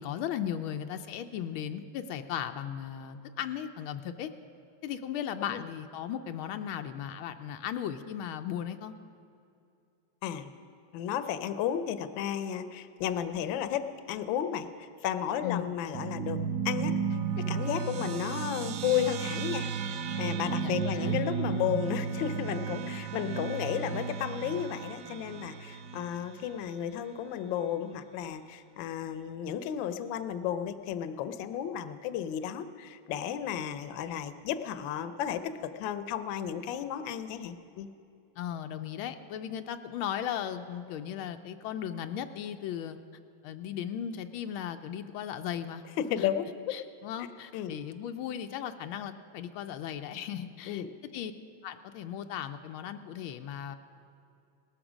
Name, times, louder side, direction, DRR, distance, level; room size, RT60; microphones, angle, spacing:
voice 1, 0.0-4.3 4.8-8.9 15.4-15.7 20.6-21.2 38.4-43.0 43.4-45.8 46.2-46.3 46.7-50.8 51.1-51.3 51.6-53.8, left 9 dB, 90° left, 7 dB, 1.5 m, -37 dB
voice 2, 10.9-16.4 16.6-16.9 17.5-35.5 35.8-37.9 46.0-46.5 47.5-47.7 50.7-50.9, left 9 dB, 75° left, 10 dB, 1.4 m, -33 dB
sound 1, 15.9-26.7, right 6 dB, 65° right, 1.2 m, -34 dB
18.0 x 13.5 x 5.0 m, 2.6 s
omnidirectional pair, 2.2 m